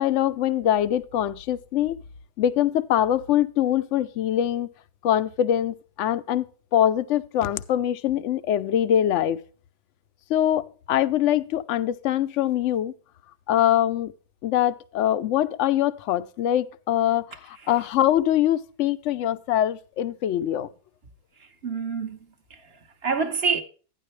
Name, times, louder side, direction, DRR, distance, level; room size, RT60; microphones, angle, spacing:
voice 1, 0.0-2.0 2.4-4.7 5.0-6.5 6.7-9.4 10.3-12.9 13.5-14.1 14.4-20.7, left 11 dB, 60° left, 0.8 m, -23 dB
voice 2, 21.4-23.6, right 5 dB, 40° right, 1.2 m, -28 dB
13.5 x 10.0 x 3.2 m
omnidirectional pair, 1.7 m